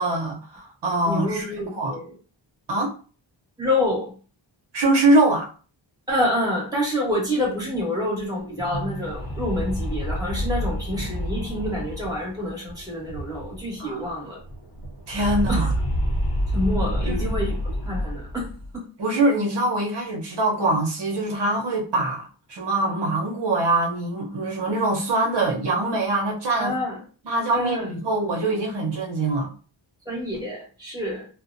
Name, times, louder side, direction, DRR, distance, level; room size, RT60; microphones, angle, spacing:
voice 1, 0.0-2.0 2.7-3.0 4.7-5.5 13.8-14.0 15.1-15.7 17.0-17.3 19.0-26.7 27.2-29.5, right 2 dB, 60° right, 0.8 m, -23 dB
voice 2, 1.1-2.1 3.6-4.1 6.1-14.4 15.5-15.7 16.5-17.5 17.8-18.5 18.7-18.8 26.6-27.0 27.5-27.9 30.1-31.3, left 1 dB, 10° right, 1.1 m, -27 dB
sound 1, 8.4-13.8 14.0-14.1 14.4-18.7, equal, 50° left, 0.6 m, -28 dB
2.4 x 2.1 x 2.5 m
wide cardioid pair, 125°, 47 cm